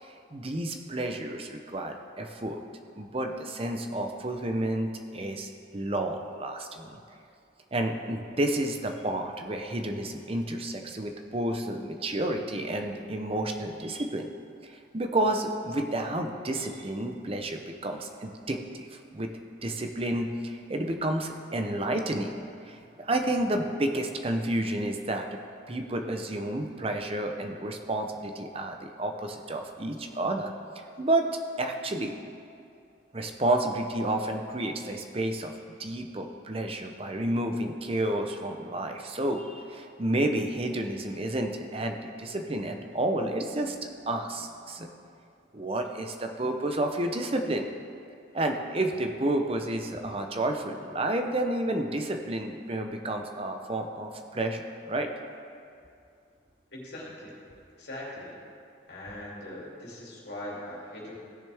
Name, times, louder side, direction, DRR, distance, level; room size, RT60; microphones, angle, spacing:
voice 1, 0.0-2.6 3.0-7.0 7.7-14.3 14.6-19.3 19.6-22.4 22.6-25.3 25.7-31.3 31.6-32.1 33.1-35.5 35.8-44.9 45.5-47.7 48.3-55.1, right 1 dB, 30° right, 4 dB, 0.7 m, -30 dB
voice 2, 56.7-57.3 57.8-58.4 58.9-61.2, left 1 dB, 55° left, -5 dB, 2.8 m, -40 dB
16.5 x 6.8 x 3.5 m, 2.5 s
head